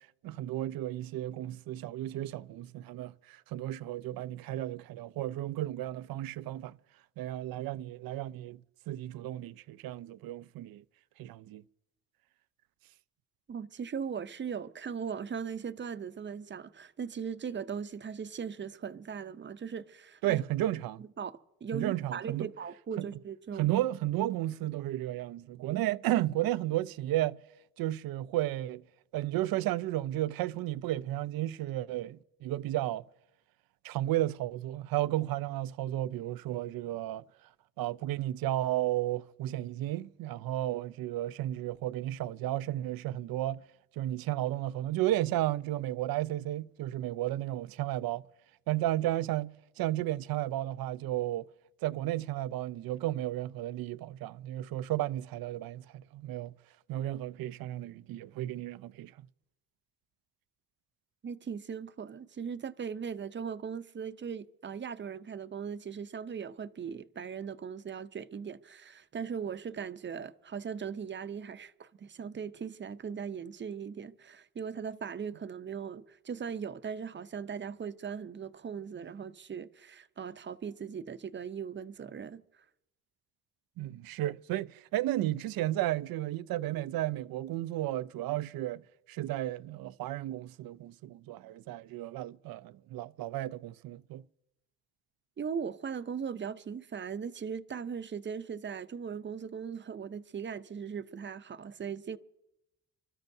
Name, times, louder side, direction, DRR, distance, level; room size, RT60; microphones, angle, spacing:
voice 1, 0.0-6.8 7.2-8.6 8.9-10.8 11.2-11.6 20.2-21.0 21.7-22.5 23.0-23.1 23.6-27.4 27.8-28.8 29.1-33.0 33.8-37.2 37.8-43.6 44.0-48.2 48.7-51.5 51.8-56.5 56.9-59.1 83.8-88.8 89.1-94.2, right 14 dB, 80° right, 0.5 m, -33 dB
voice 2, 13.5-20.4 21.2-23.7 61.2-82.6 95.4-102.2, right 7 dB, 35° right, 0.6 m, -39 dB
29.5 x 13.0 x 2.7 m
cardioid pair, 100°, 35 cm